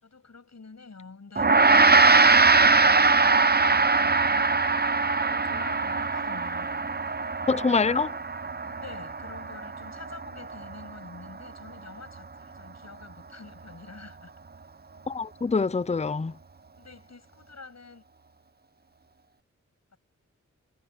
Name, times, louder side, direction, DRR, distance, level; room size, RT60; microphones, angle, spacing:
voice 1, 0.0-3.6 3.9-7.3 7.7-8.1 8.5-14.3 16.8-18.0, left 4 dB, 60° left, 7.7 m, -46 dB
Gong, 1.4-10.9, right 4 dB, 30° right, 0.9 m, -22 dB
voice 2, 7.5-8.1 15.1-16.3, left 4 dB, 20° left, 0.6 m, -25 dB
cardioid pair, 55°, 30 cm